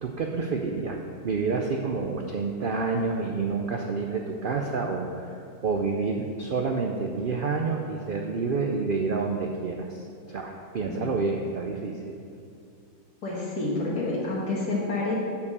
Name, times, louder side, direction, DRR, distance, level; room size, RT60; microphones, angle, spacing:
voice 1, 0.0-12.0, right 4 dB, 90° right, 2 dB, 0.4 m, -29 dB
voice 2, 13.2-15.2, left 2 dB, 85° left, -6 dB, 2.0 m, -28 dB
6.8 x 5.5 x 6.6 m, 2.4 s
omnidirectional pair, 1.6 m